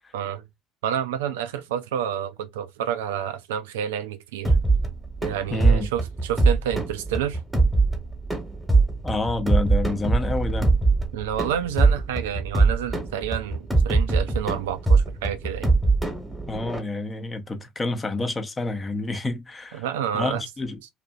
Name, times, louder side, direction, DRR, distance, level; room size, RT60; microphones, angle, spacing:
voice 1, 0.1-0.4 0.8-4.6 5.2-7.4 11.1-15.7 19.7-20.4, right 9 dB, 70° right, 0.3 m, -29 dB
sound 1, 4.4-16.8, right 3 dB, 5° right, 1.1 m, -22 dB
voice 2, 5.5-5.9 9.0-10.7 16.5-19.9 20.1-20.8, left 2 dB, 20° left, 0.7 m, -28 dB
2.7 x 2.5 x 2.3 m
figure-of-eight pair, 60°, 0 cm